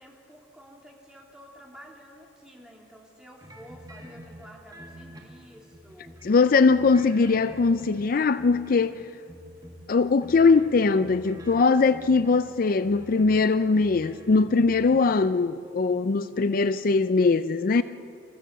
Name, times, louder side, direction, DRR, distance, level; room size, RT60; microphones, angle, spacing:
voice 1, 0.0-6.2, equal, 5° right, 3.1 m, -50 dB
sound 1, 3.4-6.3 6.7-9.0 9.2-15.0, right 1 dB, 20° right, 2.2 m, -47 dB
voice 2, 6.2-9.0 9.9-17.8, left 4 dB, 50° left, 0.4 m, -21 dB
27.0 x 15.0 x 7.4 m
head